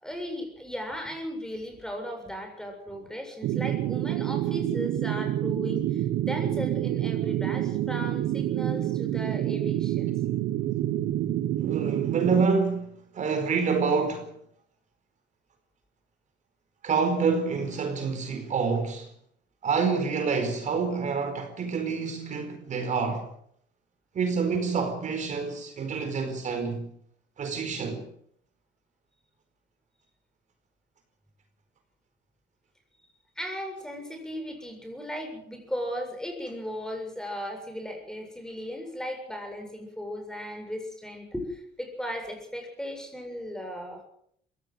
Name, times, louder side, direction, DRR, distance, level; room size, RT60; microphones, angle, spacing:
voice 1, 0.0-10.1 33.4-44.0, equal, 5° left, 7.4 m, -36 dB
sound 1, 3.4-12.5, right 13 dB, 85° right, 1.2 m, -28 dB
voice 2, 11.6-14.3 16.8-19.1 19.6-23.3 24.1-26.9 27.4-28.1, right 5 dB, 45° right, 4.6 m, -27 dB
22.0 x 17.0 x 7.9 m
cardioid pair, 110°, 17 cm